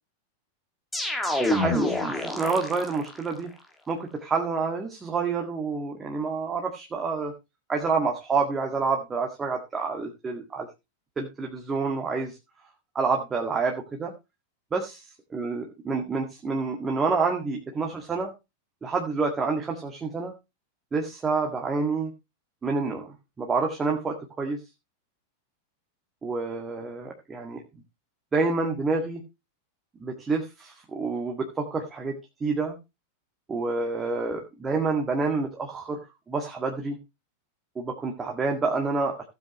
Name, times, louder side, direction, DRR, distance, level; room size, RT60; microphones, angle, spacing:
sound 1, 0.9-3.2, left 1 dB, 5° left, 2.1 m, -27 dB
voice 1, 1.4-3.5 3.9-7.3 7.7-10.7 11.2-12.4 13.0-14.1 14.7-15.0 15.3-18.3 18.8-20.3 20.9-22.1 22.6-23.1 23.4-24.6 26.2-27.6 28.3-29.2 30.0-32.8 33.5-36.0 36.3-37.0 37.8-39.2, right 4 dB, 15° right, 2 dB, 1.8 m, -28 dB
16.5 x 7.9 x 3.1 m, 0.25 s
figure-of-eight pair, 90°, 0 cm